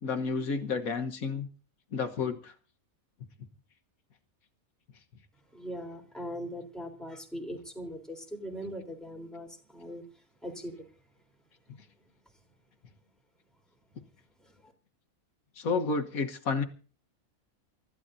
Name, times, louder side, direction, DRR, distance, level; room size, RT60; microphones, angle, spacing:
voice 1, 0.0-1.5 1.9-2.5 15.6-16.6, left 4 dB, 80° left, 1.7 m, -30 dB
voice 2, 5.5-10.0 10.4-10.9 14.6-14.7, equal, ahead, 3.6 m, -40 dB
29.0 x 14.0 x 2.7 m
omnidirectional pair, 1.5 m